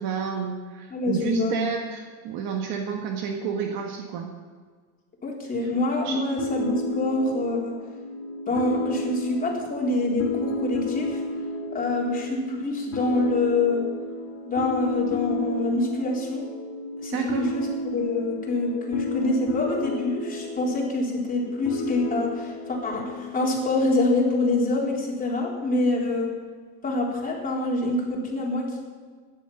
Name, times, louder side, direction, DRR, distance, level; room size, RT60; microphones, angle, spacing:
voice 1, 0.0-4.3 5.6-5.7 6.0-6.2 17.1-17.4, right 6 dB, 60° right, 2 dB, 1.7 m, -30 dB
voice 2, 0.9-1.7 5.2-7.7 8.5-11.2 11.7-13.8 14.4-16.4 17.0-26.3 26.8-28.8, left 2 dB, 20° left, -2 dB, 3.8 m, -26 dB
sound 1, 6.4-23.8, left 2 dB, 45° left, 2.6 m, -32 dB
16.0 x 11.0 x 5.6 m, 1.5 s
cardioid pair, 135°, 39 cm